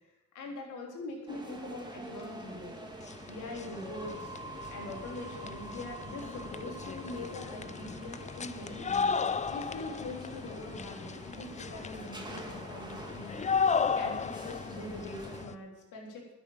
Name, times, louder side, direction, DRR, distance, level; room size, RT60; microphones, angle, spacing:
voice 1, 0.3-2.7 3.3-4.4 4.7-9.1 9.5-13.4 13.9-16.3, left 2 dB, 85° left, 0 dB, 3.6 m, -43 dB
sound 1, 1.3-15.4, right 2 dB, 15° right, 2.3 m, -46 dB
sound 2, 2.5-2.6 2.8-15.5, left 5 dB, 25° left, 0.5 m, -35 dB
10.0 x 8.4 x 8.7 m, 0.99 s
cardioid pair, 90°, 30 cm